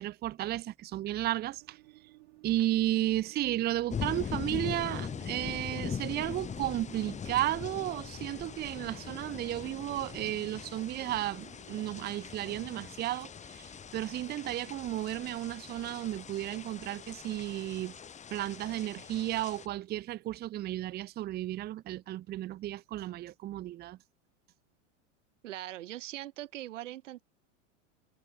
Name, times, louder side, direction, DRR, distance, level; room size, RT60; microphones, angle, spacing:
voice 1, 0.0-1.8 2.4-13.3 13.6-17.9 18.3-24.0, right 14 dB, 25° right, 0.8 m, -33 dB
sound 1, 1.4-16.1, right 22 dB, 60° right, 5.5 m, -58 dB
sound 2, 3.9-19.7, left 7 dB, 20° left, 2.1 m, -41 dB
voice 2, 25.4-27.2, right 14 dB, 80° right, 1.1 m, -41 dB
hypercardioid pair, 120°, 37 cm